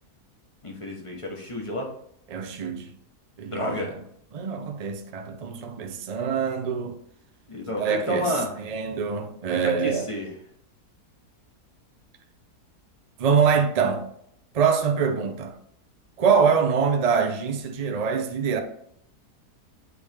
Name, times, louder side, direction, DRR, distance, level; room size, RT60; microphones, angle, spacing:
voice 1, 0.6-1.9 3.5-3.9 7.5-8.6 9.5-10.3, left 1 dB, 25° left, 1.0 m, -30 dB
voice 2, 2.3-2.9 3.4-3.9 4.3-7.0 7.8-10.1 13.2-14.1 14.5-15.5 16.2-18.6, right 6 dB, 85° right, 0.3 m, -24 dB
8.0 x 3.5 x 3.4 m
omnidirectional pair, 1.7 m